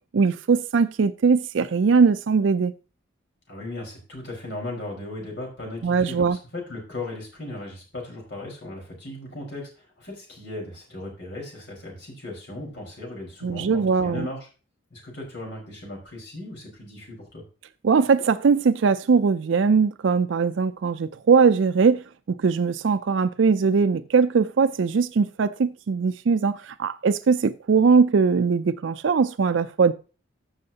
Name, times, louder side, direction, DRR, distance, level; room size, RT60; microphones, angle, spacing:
voice 1, 0.1-2.7 5.8-6.4 13.4-14.3 17.8-29.9, right 5 dB, 75° right, 0.4 m, -20 dB
voice 2, 3.5-14.5 14.9-17.4, left 2 dB, 65° left, 4.7 m, -37 dB
14.5 x 6.4 x 2.8 m
head